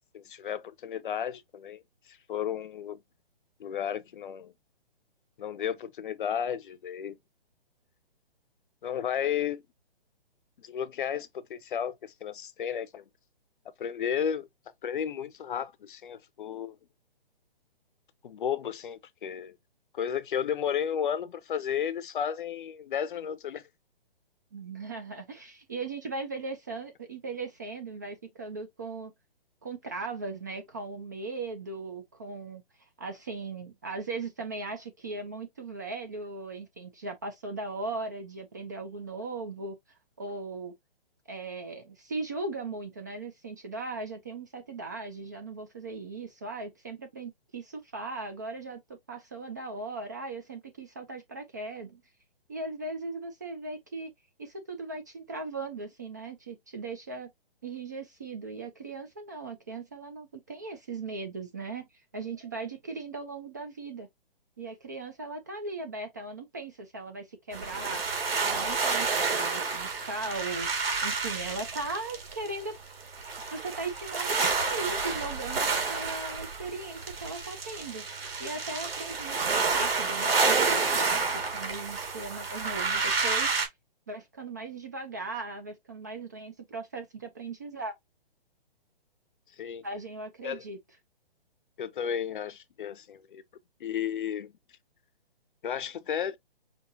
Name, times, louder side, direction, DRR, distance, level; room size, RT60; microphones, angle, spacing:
voice 1, 0.1-1.8 2.3-3.0 3.6-4.5 5.4-7.2 8.8-9.6 10.6-13.0 13.8-14.5 14.8-16.8 18.2-19.5 19.9-23.6 89.6-89.8 90.4-90.6 91.8-93.4 93.8-94.5 95.6-96.4, left 8 dB, 55° left, 0.6 m, -33 dB
voice 2, 24.5-29.1 29.6-32.6 33.0-39.8 40.2-40.7 41.3-48.8 49.1-52.0 52.5-54.1 54.4-57.3 57.6-61.9 62.1-64.1 64.6-68.0 68.4-70.7 71.0-72.7 73.5-83.7 84.1-88.0 89.8-90.8, right 3 dB, 20° right, 0.4 m, -38 dB
sound 1, 67.5-83.7, right 4 dB, 70° right, 2.2 m, -29 dB
5.1 x 2.8 x 2.7 m
hypercardioid pair, 150°, 30 cm